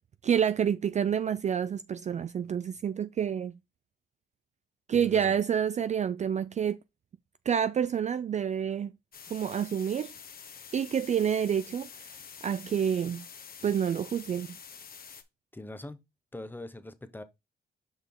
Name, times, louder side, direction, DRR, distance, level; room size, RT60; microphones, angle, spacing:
voice 1, 0.2-3.5 4.9-6.8 7.5-8.9 9.3-10.1 10.7-11.9 12.4-13.3 13.6-14.6, right 8 dB, 35° right, 0.4 m, -28 dB
voice 2, 4.9-5.4 15.5-16.0 16.3-17.2, left 2 dB, 10° left, 0.9 m, -42 dB
sound 1, 9.1-15.2, left 7 dB, 45° left, 1.2 m, -47 dB
6.1 x 5.2 x 3.7 m
cardioid pair, 90°, 20 cm